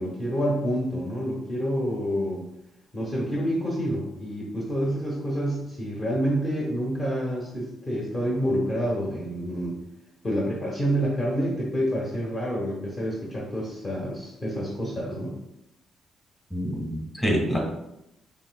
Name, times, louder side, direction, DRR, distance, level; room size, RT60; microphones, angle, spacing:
voice 1, 0.0-2.5 2.9-9.7 10.2-15.3, equal, 30° left, -4 dB, 1.1 m, -28 dB
voice 2, 16.5-17.6, equal, 15° left, -1 dB, 1.6 m, -26 dB
5.3 x 3.4 x 2.3 m, 0.84 s
cardioid pair, 90°, 0 cm